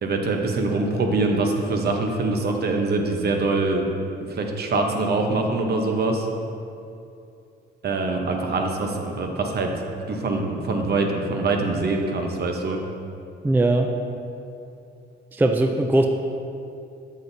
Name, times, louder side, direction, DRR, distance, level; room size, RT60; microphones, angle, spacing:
voice 1, 0.0-3.9 4.3-6.3 7.8-12.8, right 3 dB, 55° right, 3 dB, 0.9 m, -24 dB
voice 2, 13.4-13.9 15.3-16.1, right 2 dB, 10° right, 4 dB, 0.4 m, -19 dB
7.6 x 7.3 x 2.7 m, 2.6 s
cardioid pair, 90°, 20 cm